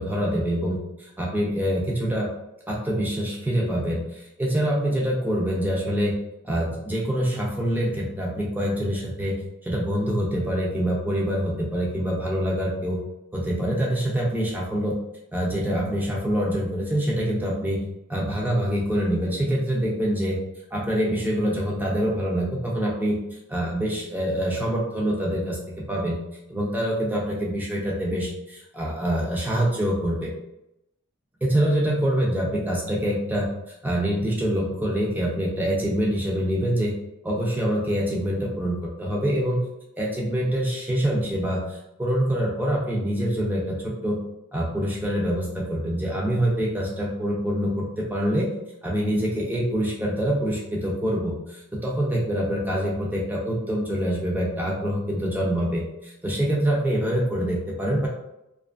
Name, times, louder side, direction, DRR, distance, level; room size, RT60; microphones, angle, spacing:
voice 1, 0.0-2.3 2.7-6.2 6.4-13.0 13.3-15.0 15.3-17.8 18.1-20.4 20.7-23.2 23.5-25.6 25.9-26.2 26.5-30.3 31.4-33.5 33.8-36.9 37.2-39.7 40.0-44.2 44.5-48.5 48.8-58.1, equal, 10° right, -4 dB, 0.5 m, -25 dB
2.6 x 2.3 x 2.4 m, 0.86 s
head